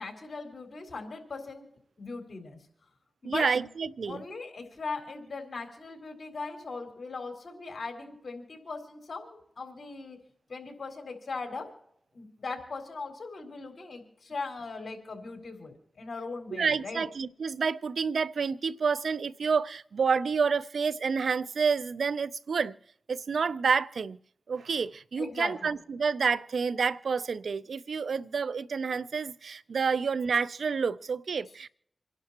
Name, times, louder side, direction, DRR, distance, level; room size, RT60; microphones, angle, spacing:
voice 1, 0.0-1.7 2.0-2.6 3.2-3.5 4.1-10.2 10.5-11.7 12.1-17.0 25.2-25.7, left 3 dB, 70° left, 3.9 m, -39 dB
voice 2, 3.2-4.2 16.5-22.7 23.1-24.2 24.5-31.7, right 5 dB, 80° right, 0.5 m, -29 dB
28.0 x 11.5 x 2.9 m
cardioid pair, 45°, 0 cm